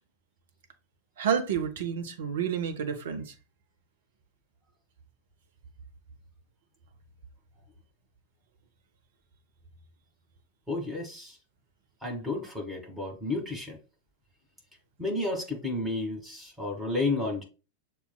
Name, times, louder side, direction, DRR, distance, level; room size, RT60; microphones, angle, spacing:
voice 1, 1.2-3.3, right 7 dB, 60° right, 0.7 m, -29 dB
voice 2, 10.7-11.4 12.0-13.8 15.0-17.4, left 2 dB, 5° right, 1.6 m, -31 dB
6.9 x 2.3 x 2.2 m
figure-of-eight pair, 90°, 0 cm